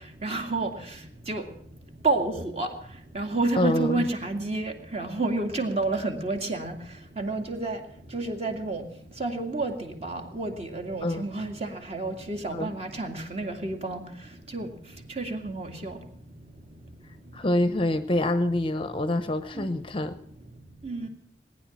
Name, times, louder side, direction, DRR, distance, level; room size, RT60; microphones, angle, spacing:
voice 1, 0.2-0.7 1.3-1.4 2.0-2.7 3.1-6.7 7.2-7.8 8.1-8.8 9.2-14.0 14.5-14.7 15.2-15.9 19.6-19.7 20.8-21.1, right 3 dB, 35° right, 5 dB, 2.2 m, -29 dB
voice 2, 3.6-4.1 11.0-11.2 12.5-12.7 17.3-20.2, left 1 dB, 30° left, 11 dB, 0.7 m, -26 dB
19.5 x 10.0 x 7.2 m, 0.66 s
head